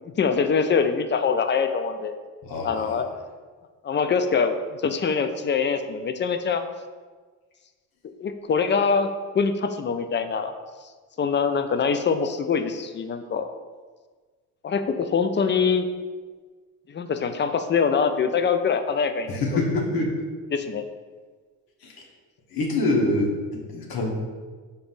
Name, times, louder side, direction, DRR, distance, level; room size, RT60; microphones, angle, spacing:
voice 1, 0.0-2.2 2.6-3.1 3.8-6.6 8.2-9.1 9.3-10.5 11.2-13.5 14.6-15.9 16.9-19.4 20.5-20.8, left 5 dB, 30° left, 8 dB, 0.4 m, -24 dB
voice 2, 2.4-3.0 19.3-20.1 21.8-22.1 22.5-24.1, left 2 dB, 60° left, -1 dB, 1.2 m, -25 dB
5.1 x 4.0 x 2.6 m, 1.4 s
hypercardioid pair, 55°, 40 cm